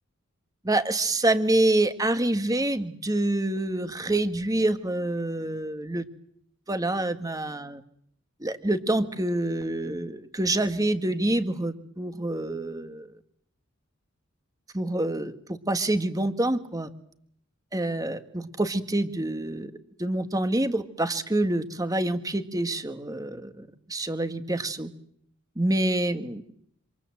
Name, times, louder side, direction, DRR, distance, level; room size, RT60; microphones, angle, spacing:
voice 1, 0.6-6.0 6.7-7.8 8.4-13.1 14.7-16.9 17.7-19.7 20.0-24.9 25.6-26.4, right 1 dB, 15° right, 9 dB, 1.8 m, -27 dB
27.5 x 27.0 x 7.7 m, 0.69 s
head